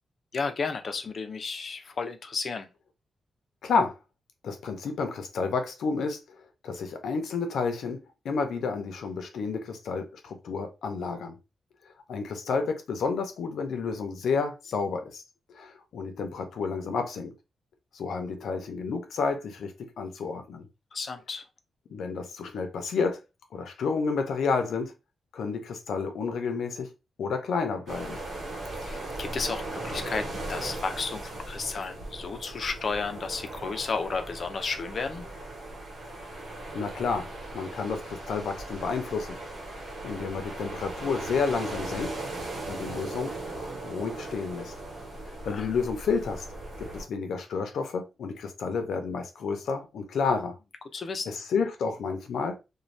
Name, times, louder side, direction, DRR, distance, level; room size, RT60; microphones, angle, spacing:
voice 1, 0.3-2.7 20.9-21.5 28.7-35.2 45.4-45.7 50.9-51.3, left 4 dB, 45° left, 0.5 m, -33 dB
voice 2, 3.6-4.0 4.4-6.4 6.6-8.0 8.2-11.4 12.1-15.2 15.5-17.3 17.9-20.7 21.9-23.2 23.5-24.9 25.3-26.9 27.2-28.2 36.0-36.4 36.7-39.4 39.7-42.2 42.7-43.4 43.8-44.7 45.2-46.5 46.8-50.6 51.3-52.6, left 5 dB, 85° left, 0.6 m, -30 dB
sound 1, 27.9-47.0, right 2 dB, 65° right, 1.3 m, -38 dB
2.6 x 2.2 x 3.2 m
wide cardioid pair, 145°, 0 cm